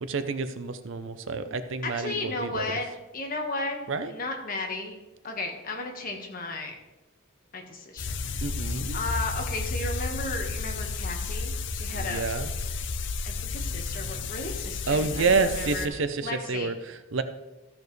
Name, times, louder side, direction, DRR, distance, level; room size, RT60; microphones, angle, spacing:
voice 1, 0.0-2.8 3.9-4.1 8.4-9.0 11.9-12.5 14.9-16.7 17.1-17.2, right 4 dB, 65° right, 10 dB, 0.6 m, -28 dB
voice 2, 1.8-5.0 5.2-6.8 7.5-8.2 8.9-12.2 13.2-15.9 16.2-16.7, left 2 dB, 40° left, 2 dB, 1.4 m, -34 dB
sound 1, 8.0-15.9, left 4 dB, 60° left, 0.6 m, -32 dB
13.5 x 7.1 x 3.2 m, 1.0 s
head